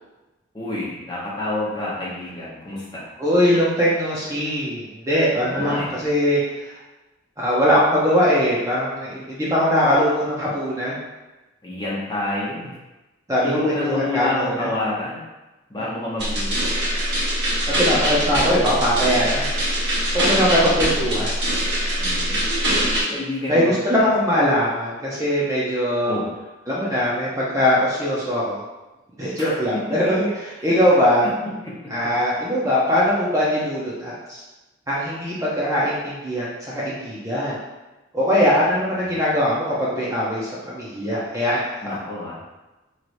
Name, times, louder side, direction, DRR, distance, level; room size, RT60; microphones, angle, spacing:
voice 1, 0.5-3.1 5.3-5.9 11.6-12.8 13.4-15.2 15.7-16.7 18.0-18.3 20.7-20.8 22.0-24.1 26.0-26.3 29.4-29.6 30.6-30.7 31.4-31.7 38.9-39.2 41.8-42.4, left 2 dB, 20° left, -7 dB, 0.9 m, -29 dB
voice 2, 3.2-6.7 7.4-11.0 13.3-14.7 17.8-19.5 20.1-21.3 23.5-26.2 26.7-28.6 29.2-31.3 31.9-34.4 34.9-37.5 38.1-42.0, equal, 15° right, -7 dB, 0.7 m, -21 dB
sound 1, 16.2-23.0, equal, 55° right, 1.2 m, -22 dB
4.6 x 3.2 x 2.6 m, 1.1 s
head